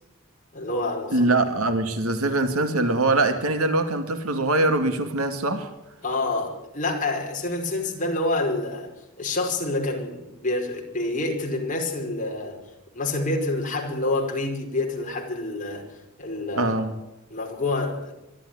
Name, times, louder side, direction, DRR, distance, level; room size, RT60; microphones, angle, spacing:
voice 1, 0.5-1.3 6.0-12.6 12.9-15.9 16.2-16.7 17.3-18.1, left 2 dB, 40° left, 5.3 m, -27 dB
voice 2, 1.1-5.7 16.5-17.0, right 2 dB, 85° right, 2.4 m, -23 dB
24.5 x 13.0 x 9.7 m
head